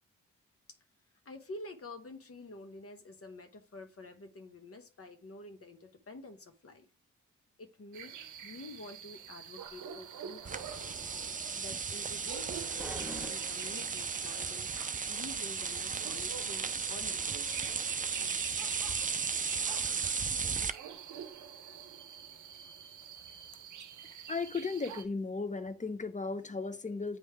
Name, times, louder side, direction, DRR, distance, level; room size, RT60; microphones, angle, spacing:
voice 1, 1.2-6.9 7.6-17.6 19.8-19.9 21.9-22.0, left 2 dB, 45° left, 1.1 m, -49 dB
sound 1, 7.9-25.0, right 8 dB, 70° right, 0.7 m, -47 dB
sound 2, 10.4-20.7, right 5 dB, 25° right, 0.5 m, -35 dB
sound 3, 12.8-14.3, right 1 dB, 5° right, 1.6 m, -46 dB
voice 2, 24.3-27.2, left 4 dB, 25° left, 0.8 m, -35 dB
9.0 x 3.1 x 3.3 m
supercardioid pair, 40°, 31 cm